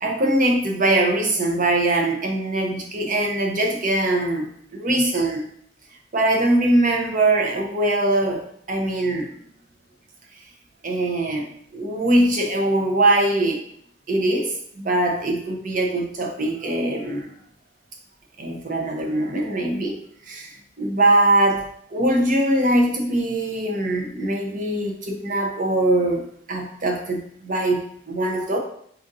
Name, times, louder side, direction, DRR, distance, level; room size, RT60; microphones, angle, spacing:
voice 1, 0.0-5.5 6.1-9.3 10.8-11.4 11.7-13.6 14.1-17.3 18.4-20.5 20.8-21.7 21.9-26.2 26.5-28.6, right 1 dB, 45° right, 1 dB, 0.7 m, -22 dB
4.2 x 2.6 x 3.8 m, 0.66 s
head